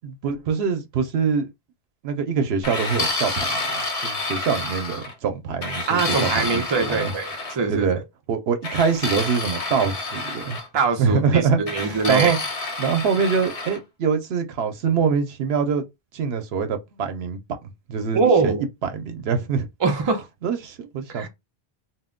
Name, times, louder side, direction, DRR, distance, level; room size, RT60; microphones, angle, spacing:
voice 1, 0.2-1.5 2.0-7.1 7.7-8.0 8.3-10.6 11.0-12.4 12.8-15.8 16.1-18.6 18.9-19.7 20.4-21.3, right 6 dB, 85° right, 0.8 m, -24 dB
sound 1, 2.6-5.1 5.6-7.6 8.6-10.7 11.7-13.8, left 2 dB, 40° left, 0.7 m, -29 dB
voice 2, 5.9-7.9 10.7-12.3 18.1-18.6 19.8-20.3 21.1-21.3, right 4 dB, 35° right, 0.5 m, -22 dB
2.2 x 2.1 x 3.5 m
omnidirectional pair, 1.0 m